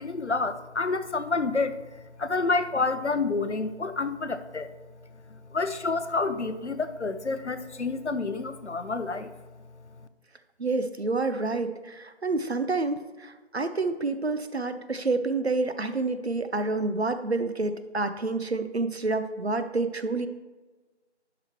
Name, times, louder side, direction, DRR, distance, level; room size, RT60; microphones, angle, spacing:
voice 1, 0.0-4.7 5.3-9.3, left 3 dB, 75° left, 11 dB, 0.8 m, -29 dB
voice 2, 10.6-20.3, right 3 dB, 65° right, 10 dB, 0.7 m, -28 dB
11.0 x 6.1 x 3.0 m, 1.2 s
figure-of-eight pair, 170°, 35 cm